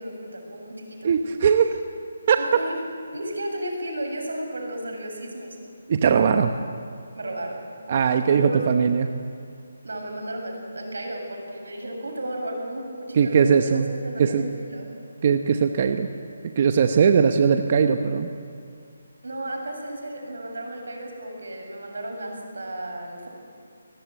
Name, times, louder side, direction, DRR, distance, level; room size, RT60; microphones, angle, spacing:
voice 1, 0.0-1.1 2.4-2.8 3.1-5.6 7.1-7.6 8.3-8.6 9.8-13.8 14.0-14.9 19.2-23.3, right 1 dB, 85° right, 2 dB, 7.4 m, -34 dB
voice 2, 1.0-1.8 2.3-2.4 5.9-6.6 7.9-9.1 13.1-13.9 14.2-14.4 15.2-16.1 16.6-18.3, right 6 dB, 35° right, 7 dB, 1.0 m, -20 dB
23.0 x 18.5 x 9.2 m, 2.3 s
hypercardioid pair, 165°, 0 cm